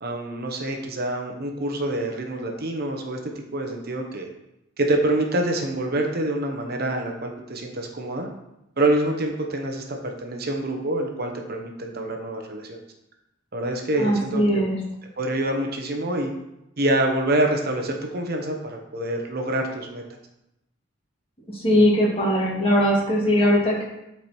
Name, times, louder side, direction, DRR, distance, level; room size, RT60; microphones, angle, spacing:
voice 1, 0.0-4.3 4.8-8.3 8.8-12.8 13.5-14.7 15.2-16.3 16.8-20.0, right 1 dB, 55° right, 3 dB, 1.1 m, -26 dB
voice 2, 14.0-14.8 21.5-23.8, equal, 30° left, -4 dB, 2.6 m, -20 dB
11.5 x 4.8 x 4.5 m, 0.89 s
head